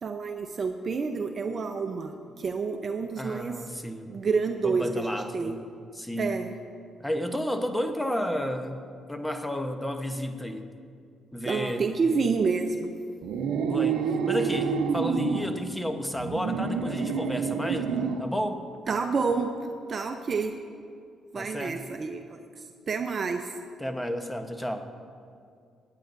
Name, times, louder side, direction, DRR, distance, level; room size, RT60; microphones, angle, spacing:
voice 1, 0.0-3.6 4.1-5.5 6.2-6.5 11.4-12.9 18.9-19.5 19.9-20.5 21.3-23.5, right 4 dB, 45° right, 5 dB, 0.7 m, -29 dB
voice 2, 3.2-4.2 4.6-5.6 5.9-6.4 7.0-10.7 11.3-11.8 13.6-14.0 14.3-18.6 21.3-21.8 23.8-24.9, equal, 5° left, 6 dB, 1.0 m, -32 dB
sound 1, 13.2-15.5 16.1-18.3, right 5 dB, 85° right, 0.8 m, -28 dB
25.5 x 9.3 x 2.6 m, 2.3 s
cardioid pair, 90°, 0 cm